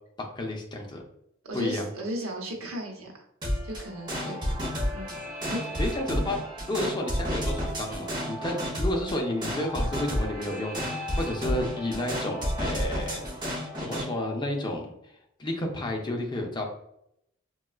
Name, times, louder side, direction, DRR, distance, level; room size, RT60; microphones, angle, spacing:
voice 1, 0.2-1.0 1.5-1.9 5.8-6.4 6.7-13.3 13.8-15.1 15.4-16.6, left 1 dB, 20° left, 2 dB, 0.5 m, -31 dB
voice 2, 1.5-3.2 3.6-4.5 4.9-5.1 5.5-5.6, right 1 dB, 80° right, 0 dB, 0.8 m, -35 dB
sound 1, 3.4-14.1, equal, 20° right, 1.0 m, -31 dB
4.1 x 2.3 x 2.3 m, 0.77 s
head